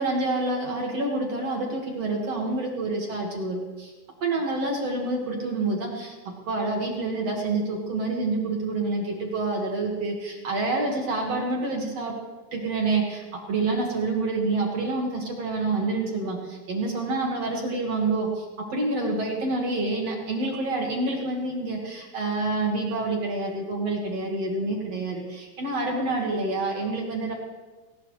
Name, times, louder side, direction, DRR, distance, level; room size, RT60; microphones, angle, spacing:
voice 1, 0.0-3.9 4.2-12.2 12.5-13.2 13.5-18.5 18.7-27.3, right 2 dB, 50° right, -1 dB, 2.3 m, -27 dB
18.5 x 18.5 x 3.3 m, 1.3 s
omnidirectional pair, 4.9 m